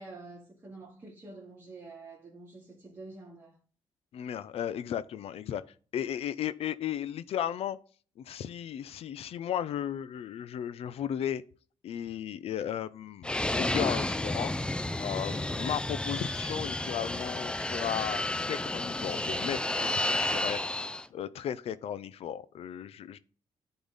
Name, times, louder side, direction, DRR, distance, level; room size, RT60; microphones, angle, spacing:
voice 1, 0.0-3.6, right 3 dB, 25° right, 2.1 m, -47 dB
voice 2, 4.1-5.6 5.9-7.8 8.2-11.4 11.8-14.5 15.0-19.6 19.9-20.6 21.1-23.2, left 10 dB, 70° left, 0.5 m, -35 dB
Fixed-wing aircraft airplane, 13.2-21.1, left 1 dB, 10° left, 0.4 m, -31 dB
10.5 x 3.9 x 3.9 m
cardioid pair, 100°, 11 cm